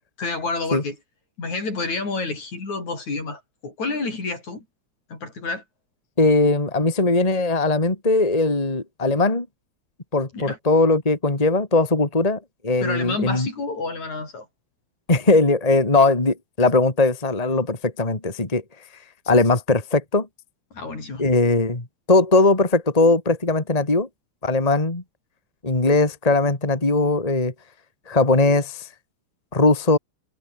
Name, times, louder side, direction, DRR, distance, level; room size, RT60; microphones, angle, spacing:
voice 1, 0.2-1.0 1.4-4.7 5.1-5.6 10.3-10.6 12.8-14.5 20.7-21.2, left 3 dB, 70° left, 8.5 m, -29 dB
voice 2, 6.2-9.5 10.1-13.5 15.1-18.6 19.3-20.3 21.2-24.1 24.4-25.0 25.6-27.5 28.1-28.9 29.5-30.0, left 2 dB, 10° left, 2.8 m, -19 dB
omnidirectional pair, 3.5 m